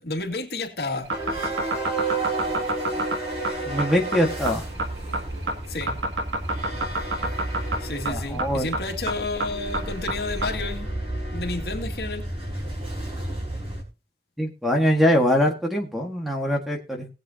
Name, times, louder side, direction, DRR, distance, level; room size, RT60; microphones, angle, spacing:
voice 1, 0.0-1.3 3.4-3.6 5.7-6.0 7.8-10.9 11.3-12.3, left 3 dB, 60° left, 2.3 m, -31 dB
sound 1, 1.0-10.6, right 2 dB, 85° right, 2.2 m, -28 dB
sound 2, 1.1-13.8, right 2 dB, 30° right, 4.5 m, -31 dB
voice 2, 3.6-4.6 8.1-8.7 14.4-17.1, equal, ahead, 1.7 m, -23 dB
20.0 x 7.8 x 2.9 m
head